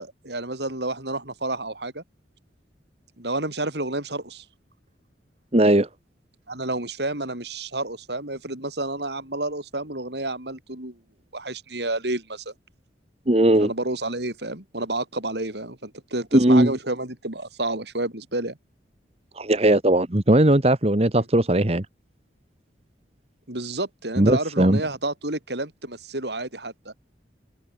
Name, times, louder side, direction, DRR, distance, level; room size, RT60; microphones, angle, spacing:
voice 1, 0.0-2.0 3.2-4.4 6.5-11.0 11.3-12.5 13.6-18.6 21.2-21.3 23.5-26.9, right 2 dB, 70° right, 5.9 m, -30 dB
voice 2, 5.5-5.9 13.3-13.7 16.3-16.7 19.4-21.9 24.2-24.8, right 1 dB, 35° right, 1.4 m, -18 dB
head